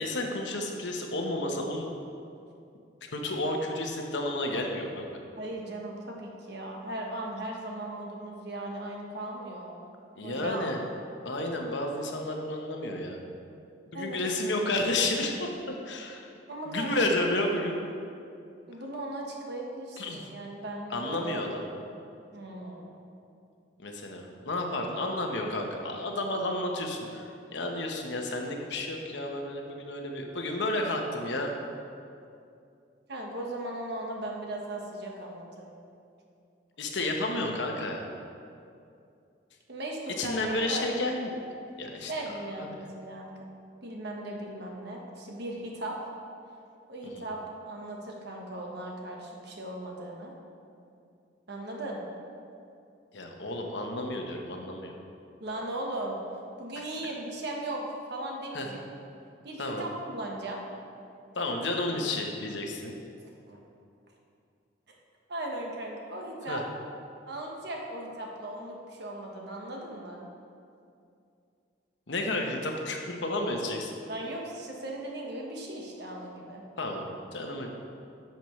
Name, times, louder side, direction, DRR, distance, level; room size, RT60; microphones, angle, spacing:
voice 1, 0.0-1.9 3.1-5.1 10.2-10.8 11.2-13.2 13.9-16.3 16.7-17.8 20.0-20.3 20.9-21.6 23.8-31.5 36.8-38.0 40.2-41.3 41.8-42.1 42.6-42.7 47.1-47.3 53.1-55.0 56.8-56.9 58.5-58.7 59.6-59.8 61.3-62.9 66.5-66.6 72.1-73.9 76.8-77.7, left 2 dB, 70° left, 2 dB, 1.0 m, -31 dB
voice 2, 5.4-9.8 10.2-10.7 13.9-14.2 16.5-16.9 18.7-21.5 22.3-23.0 33.1-35.8 39.7-40.8 42.1-43.3 43.8-46.0 46.9-47.4 47.6-50.3 51.5-52.0 55.4-56.2 56.6-58.8 59.4-60.6 63.5-63.6 65.3-66.6 67.3-70.3 74.1-76.6, right 1 dB, 65° right, 0 dB, 1.3 m, -37 dB
10.5 x 6.9 x 3.2 m, 2.5 s
head